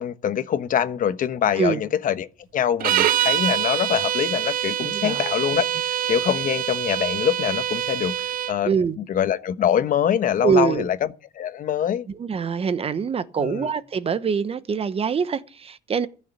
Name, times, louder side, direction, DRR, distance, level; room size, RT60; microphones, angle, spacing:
voice 1, 0.0-2.3 2.5-8.7 9.1-11.0 11.3-12.1 13.4-13.7, left 9 dB, 55° left, 1.1 m, -24 dB
sound 1, 2.8-8.6, right 11 dB, 60° right, 0.6 m, -25 dB
voice 2, 4.8-5.3 8.6-9.0 10.4-10.9 12.1-16.1, right 6 dB, 35° right, 1.0 m, -24 dB
15.0 x 6.7 x 8.3 m
cardioid pair, 110°, 17 cm